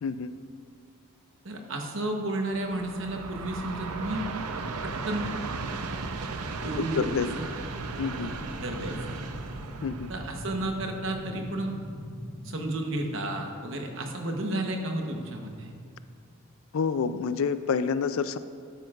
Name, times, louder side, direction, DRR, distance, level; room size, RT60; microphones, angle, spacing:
voice 1, 0.0-0.3 6.8-7.3 8.0-8.3 9.8-10.1 16.7-18.4, left 6 dB, 70° left, 13 dB, 0.3 m, -28 dB
voice 2, 1.4-4.2 4.8-5.3 6.6-7.5 8.2-8.3 8.6-9.2 10.1-11.8 12.4-15.7, right 1 dB, 60° right, 3 dB, 1.0 m, -32 dB
Train, 2.5-11.7, right 4 dB, 90° right, 0.6 m, -37 dB
sound 1, 3.7-12.5, equal, 20° left, 1.0 m, -42 dB
12.0 x 9.2 x 2.4 m, 2.2 s
head